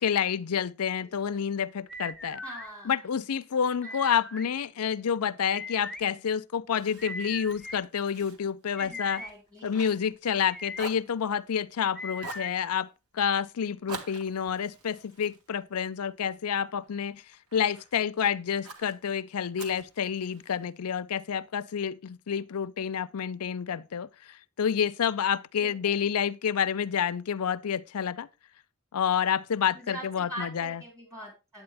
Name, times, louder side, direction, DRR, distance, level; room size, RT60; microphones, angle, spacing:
voice 1, 0.0-2.4 2.8-9.2 9.6-12.9 13.1-17.2 17.5-28.3 28.9-30.8, left 7 dB, 80° left, 0.5 m, -29 dB
voice 2, 1.0-1.4 2.4-3.0 3.8-3.9 8.8-9.7 25.6-26.0 29.7-31.6, equal, 15° right, 4.3 m, -43 dB
sound 1, 1.9-2.7 3.8-4.5 5.5-6.0 7.0-7.8 8.8-9.3 10.3-10.9 12.0-12.5, left 1 dB, ahead, 0.4 m, -40 dB
Fire, 6.8-10.5 10.7-11.8 12.2-12.6 13.9-16.3 16.8-17.9 18.6-19.0 19.6-20.7, right 3 dB, 90° right, 1.6 m, -46 dB
8.7 x 8.6 x 3.4 m
head